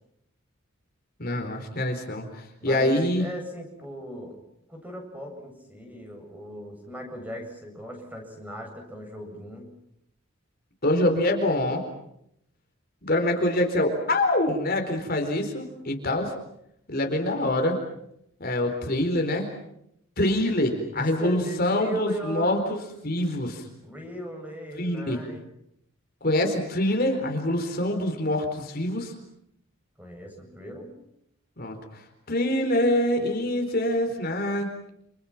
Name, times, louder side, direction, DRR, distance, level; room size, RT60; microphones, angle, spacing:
voice 1, 1.2-3.3 10.8-11.8 13.0-16.3 16.9-17.8 18.4-19.5 20.2-22.8 23.0-23.6 24.8-25.2 26.2-29.1 31.6-34.9, left 1 dB, 45° left, 4 dB, 4.3 m, -25 dB
voice 2, 2.6-4.4 4.7-9.7 20.9-23.2 23.8-25.4 30.0-30.9, equal, 10° right, 2 dB, 7.9 m, -38 dB
29.5 x 29.0 x 6.0 m, 0.77 s
head